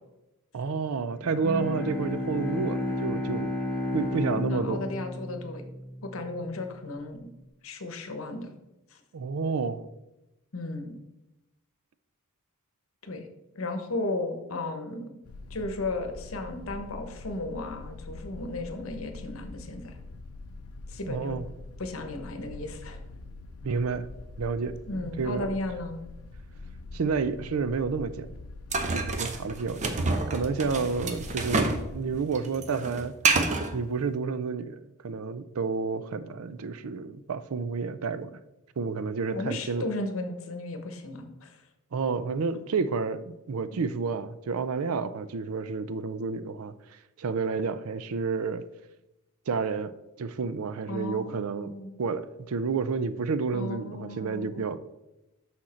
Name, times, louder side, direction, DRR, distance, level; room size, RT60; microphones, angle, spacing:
voice 1, 0.5-3.5 3.9-4.8 9.1-9.8 21.0-21.5 23.6-24.1 24.4-25.6 26.9-28.3 28.9-33.1 33.7-38.4 38.8-39.8 41.9-46.7 47.2-48.6 49.5-49.9 50.2-51.7 52.0-54.8, right 5 dB, 75° right, 14 dB, 0.5 m, -30 dB
Bowed string instrument, 1.2-6.5, left 1 dB, 10° left, 1.3 m, -32 dB
voice 2, 4.3-5.6 6.0-7.3 7.6-8.5 8.9-9.0 10.5-11.0 13.0-13.3 13.5-15.1 15.5-20.0 20.9-21.4 21.8-23.0 24.9-26.0 30.6-31.2 39.3-41.6 43.7-43.8 50.9-51.9 53.5-54.6, left 2 dB, 65° left, 6 dB, 1.0 m, -35 dB
sound 1, 15.2-32.2, left 2 dB, 85° left, 0.6 m, -44 dB
sound 2, 28.7-31.8 32.1-33.7, right 3 dB, 35° right, 0.7 m, -27 dB
6.3 x 6.0 x 4.3 m, 0.95 s
head